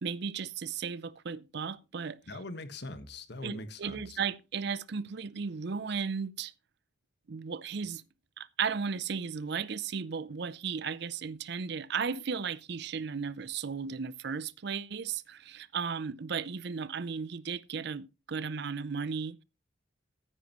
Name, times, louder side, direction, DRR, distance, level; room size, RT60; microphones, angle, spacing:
voice 1, 0.0-2.2 3.4-6.5 7.3-8.0 8.4-19.4, right 6 dB, 55° right, 0.5 m, -35 dB
voice 2, 2.3-4.2, left 2 dB, 55° left, 1.4 m, -42 dB
14.5 x 9.9 x 3.0 m
head